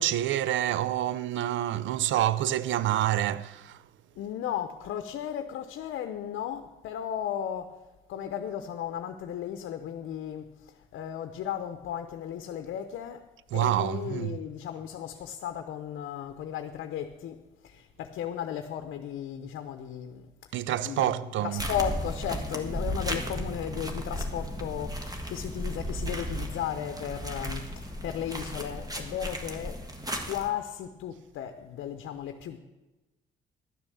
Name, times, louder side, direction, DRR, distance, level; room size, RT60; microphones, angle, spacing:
voice 1, 0.0-3.8 13.5-14.4 20.5-21.6, right 12 dB, 75° right, 0.5 m, -27 dB
voice 2, 4.2-7.7 8.1-10.5 10.9-13.2 13.5-20.3 20.8-29.8 30.2-32.6, left 9 dB, 80° left, 0.8 m, -35 dB
sound 1, 21.6-30.5, equal, 20° right, 1.5 m, -35 dB
12.0 x 7.2 x 6.9 m
cardioid pair, 90°, 20 cm